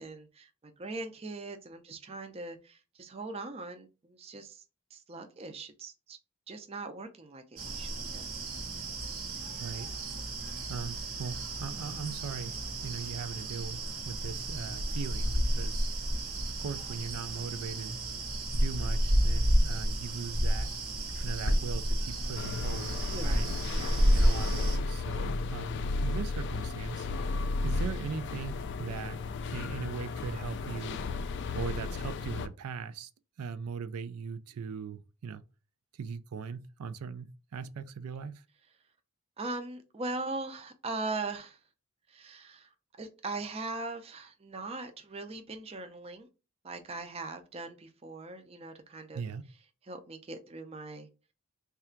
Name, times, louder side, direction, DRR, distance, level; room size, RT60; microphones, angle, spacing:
voice 1, 0.0-4.6 4.9-6.2 6.5-8.5 23.1-24.0 39.4-41.6 42.1-42.7 43.0-46.3 46.6-49.2 49.8-51.1, right 3 dB, 25° right, 0.4 m, -40 dB
sound 1, 7.6-24.8, equal, 70° right, 1.0 m, -31 dB
voice 2, 9.5-9.9 10.7-12.6 12.8-15.9 16.6-18.0 18.5-20.7 21.2-23.5 24.1-27.1 27.6-29.2 29.5-31.0 31.5-33.1 33.4-35.4 36.0-38.3 49.1-49.5, right 6 dB, 85° right, 0.4 m, -39 dB
sound 2, 22.3-32.5, left 3 dB, 50° left, 0.3 m, -34 dB
3.3 x 2.4 x 4.3 m
head